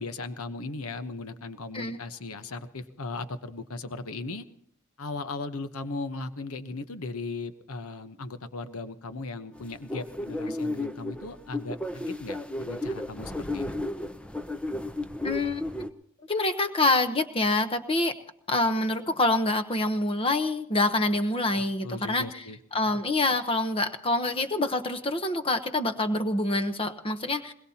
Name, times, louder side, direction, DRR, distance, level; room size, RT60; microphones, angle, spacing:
voice 1, 0.0-4.4 5.0-13.8 21.5-22.6 22.9-23.0, left 3 dB, 80° left, 10 dB, 1.0 m, -37 dB
sound 1, 9.6-15.9, left 1 dB, 5° left, 0.6 m, -33 dB
voice 2, 15.2-15.6 16.3-18.1 18.5-22.4 22.7-27.5, left 2 dB, 25° left, 8 dB, 0.9 m, -26 dB
22.0 x 21.0 x 2.9 m, 0.70 s
head